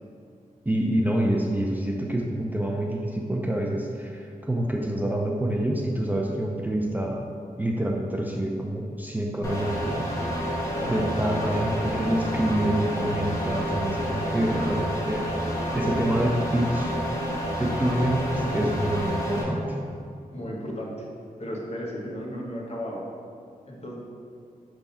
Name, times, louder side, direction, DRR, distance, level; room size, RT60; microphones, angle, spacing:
voice 1, 0.7-7.2 7.6-10.1 10.9-15.3 15.7-16.9 17.6-19.8, right 1 dB, 10° right, -1 dB, 0.5 m, -27 dB
sound 1, 9.4-19.4, equal, 20° left, 1.2 m, -29 dB
voice 2, 11.4-11.9 14.5-14.8 20.3-21.0 21.4-23.0 23.7-24.0, equal, 45° left, -2 dB, 1.1 m, -35 dB
5.2 x 3.5 x 5.6 m, 2.3 s
wide cardioid pair, 95°, 15 cm